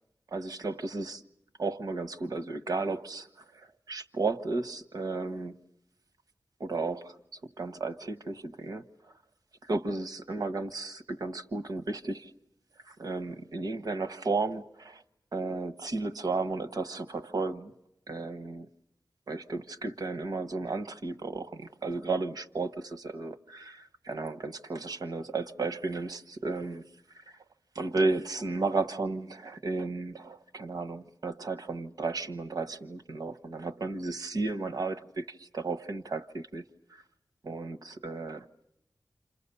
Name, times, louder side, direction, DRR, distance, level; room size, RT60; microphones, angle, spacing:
voice 1, 0.3-1.2 1.6-3.3 3.5-5.6 6.6-8.9 9.7-12.3 12.9-15.0 15.3-17.7 18.1-18.7 19.3-26.9 27.7-36.6 36.9-37.0 37.4-38.5, right 3 dB, 85° right, 1.4 m, -34 dB
29.0 x 27.5 x 7.0 m
wide cardioid pair, 75°, 6 cm